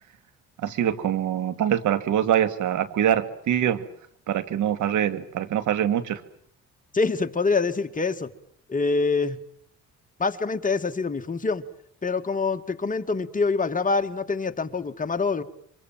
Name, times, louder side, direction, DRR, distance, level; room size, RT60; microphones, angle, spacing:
voice 1, 0.6-3.8 4.3-6.2, right 10 dB, 80° right, 12 dB, 2.4 m, -24 dB
voice 2, 6.9-8.3 8.7-9.4 10.2-11.6 12.0-15.4, left 4 dB, 25° left, 6 dB, 2.1 m, -25 dB
28.0 x 25.5 x 7.5 m, 0.64 s
cardioid pair, 90°, 30 cm